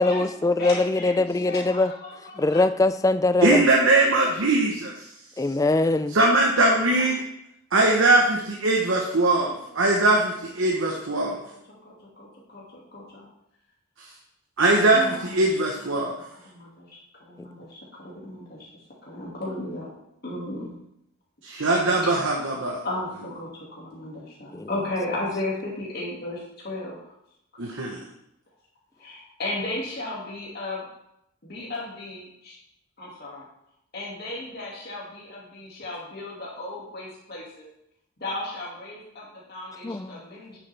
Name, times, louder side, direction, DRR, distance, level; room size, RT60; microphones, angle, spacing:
voice 1, 0.0-1.9 2.4-3.6 5.4-6.2 24.5-24.7 39.8-40.1, left 2 dB, 15° left, 11 dB, 0.3 m, -22 dB
voice 2, 0.6-2.6 7.0-7.1 8.6-10.0 10.6-13.3 14.9-18.7 19.0-19.9 20.2-20.8 22.4-22.5 22.8-27.1 29.0-30.9 31.4-32.6 33.0-33.5 33.9-37.7 38.2-40.6, left 2 dB, 50° left, -5 dB, 2.3 m, -36 dB
voice 3, 3.4-4.9 6.1-7.2 7.7-11.4 14.6-16.2 21.4-22.8 27.6-28.0, right 2 dB, 75° right, -1 dB, 1.1 m, -21 dB
9.4 x 7.4 x 3.5 m, 0.79 s
head